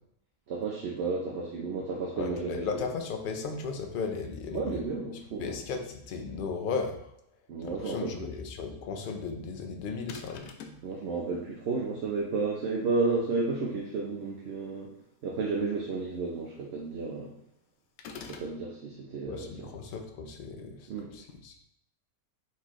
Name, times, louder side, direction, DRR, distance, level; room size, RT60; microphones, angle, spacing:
voice 1, 0.5-2.6 4.5-5.6 7.5-8.1 10.8-14.9 15.2-17.3 18.2-19.7 20.9-21.1, right 4 dB, 55° right, -2 dB, 0.8 m, -32 dB
voice 2, 2.2-4.8 5.4-7.1 7.6-10.5 19.2-21.6, left 5 dB, 50° left, 4 dB, 0.6 m, -36 dB
sound 1, 10.1-10.9 18.0-18.6, left 5 dB, 80° left, 1.0 m, -44 dB
4.3 x 4.1 x 3.0 m, 0.78 s
omnidirectional pair, 1.5 m